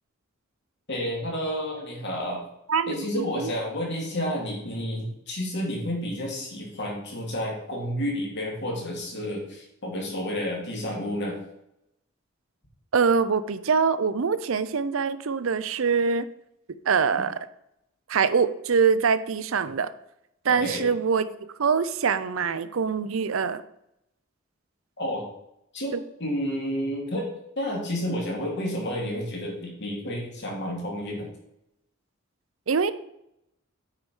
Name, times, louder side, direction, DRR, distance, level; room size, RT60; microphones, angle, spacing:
voice 1, 0.9-2.4 2.9-11.4 20.6-20.9 25.0-25.3 25.7-25.9 26.2-27.3 27.6-31.3, equal, 60° left, -2 dB, 2.6 m, -30 dB
voice 2, 2.7-3.5 12.9-16.3 16.9-17.3 18.1-19.9 20.4-21.2 21.6-23.6 25.9-26.0 32.7-32.9, right 5 dB, 75° right, 14 dB, 0.6 m, -24 dB
8.9 x 4.7 x 5.4 m, 0.81 s
head